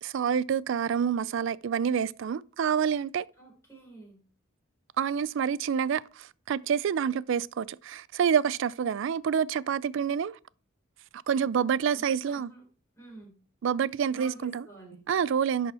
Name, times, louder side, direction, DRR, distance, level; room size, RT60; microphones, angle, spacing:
voice 1, 0.0-3.3 5.0-10.4 11.3-12.5 13.6-14.6 15.1-15.7, right 7 dB, 60° right, 0.3 m, -27 dB
voice 2, 3.4-4.2 11.9-12.6 13.0-13.4 14.1-15.0, right 2 dB, 15° left, 3.7 m, -49 dB
11.0 x 4.2 x 4.2 m
head